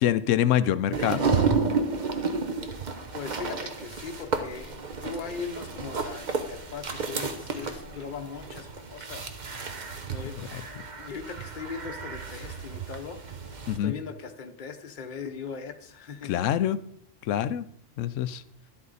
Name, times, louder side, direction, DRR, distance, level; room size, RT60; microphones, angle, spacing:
voice 1, 0.0-1.3 10.5-10.6 13.7-13.9 16.3-16.8 17.2-17.7 18.0-18.4, left 11 dB, 85° left, 15 dB, 0.9 m, -25 dB
sound 1, 0.9-13.8, right 4 dB, 40° right, 0.9 m, -32 dB
voice 2, 3.1-4.7 5.0-9.2 10.1-10.4 11.0-13.2 13.5-16.3, left 6 dB, 45° left, 6 dB, 1.0 m, -39 dB
sound 2, 3.7-8.7, left 2 dB, 90° right, 4.3 m, -52 dB
11.5 x 7.9 x 4.1 m, 0.71 s
omnidirectional pair, 1.3 m